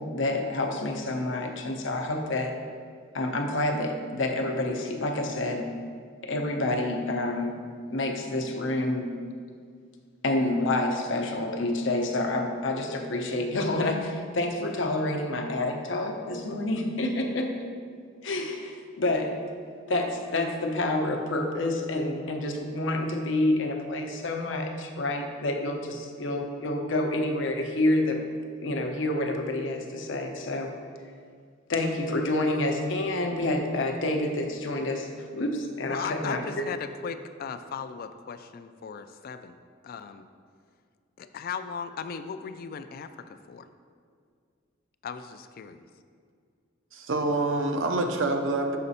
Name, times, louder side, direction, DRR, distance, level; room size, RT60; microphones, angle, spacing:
voice 1, 0.0-2.5 3.1-5.8 6.2-7.6 7.9-9.2 10.2-17.6 18.2-19.5 19.9-28.2 28.6-30.8 31.7-36.6, left 2 dB, 65° left, 3 dB, 0.8 m, -28 dB
voice 2, 35.9-39.6 39.8-40.3 41.2-43.7 45.0-45.9, left 6 dB, 50° left, 9 dB, 0.3 m, -37 dB
voice 3, 46.9-48.8, right 2 dB, 70° right, 4 dB, 0.7 m, -26 dB
6.6 x 5.0 x 4.1 m, 2.1 s
head